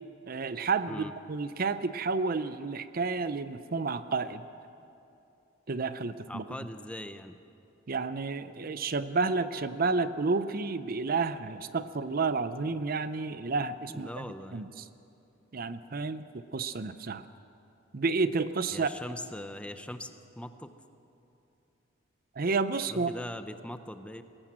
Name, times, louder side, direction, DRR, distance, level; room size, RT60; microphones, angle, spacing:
voice 1, 0.3-4.5 5.7-6.4 7.9-14.3 14.5-14.8 15.5-17.2 17.9-18.9 22.4-23.1, right 4 dB, 50° right, 13 dB, 0.6 m, -30 dB
voice 2, 6.3-7.4 13.9-14.7 18.7-20.7 22.8-24.2, left 1 dB, 5° left, 9 dB, 0.7 m, -41 dB
20.5 x 18.0 x 7.6 m, 2.7 s
head